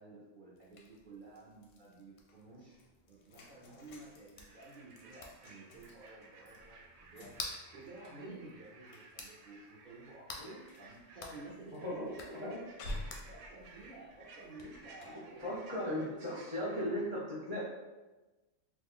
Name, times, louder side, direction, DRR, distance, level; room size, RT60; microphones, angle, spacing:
voice 1, 0.0-2.8 3.1-7.3 7.7-12.5 13.3-17.0, right 2 dB, 55° right, -7 dB, 0.6 m, -53 dB
sound 1, 0.5-16.9, left 3 dB, 65° left, 0.7 m, -53 dB
sound 2, 0.6-1.8 2.3-15.1, left 1 dB, 85° left, 1.0 m, -52 dB
sound 3, 4.4-17.0, right 3 dB, 70° right, 0.9 m, -58 dB
voice 2, 11.8-12.6 15.4-17.6, left 1 dB, 40° left, -8 dB, 0.4 m, -37 dB
3.0 x 2.2 x 3.5 m, 1.2 s
omnidirectional pair, 1.5 m